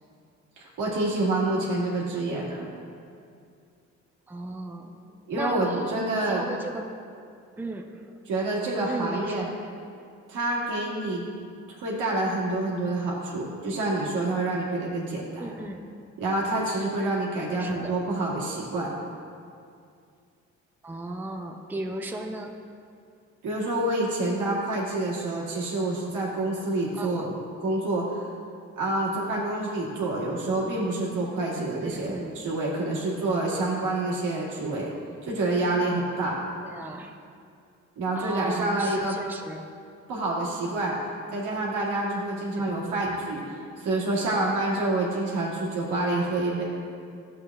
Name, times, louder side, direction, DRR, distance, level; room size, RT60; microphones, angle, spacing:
voice 1, 0.6-2.7 5.3-6.4 8.3-9.5 10.3-11.2 11.8-15.5 16.2-18.9 23.4-27.3 27.6-28.3 28.8-34.9 35.2-36.4 38.0-39.2 40.1-41.0 41.3-46.6, right 2 dB, 85° right, -5 dB, 2.0 m, -27 dB
voice 2, 4.3-5.0 5.3-6.0 6.3-6.9 7.6-8.0 8.9-9.4 15.4-15.8 17.5-18.0 20.8-22.6 27.0-27.3 31.8-32.4 36.6-37.1 38.1-39.6 42.5-43.0, right 2 dB, 5° right, 3 dB, 0.5 m, -35 dB
11.5 x 7.6 x 2.4 m, 2.4 s
cardioid pair, 90°, 30 cm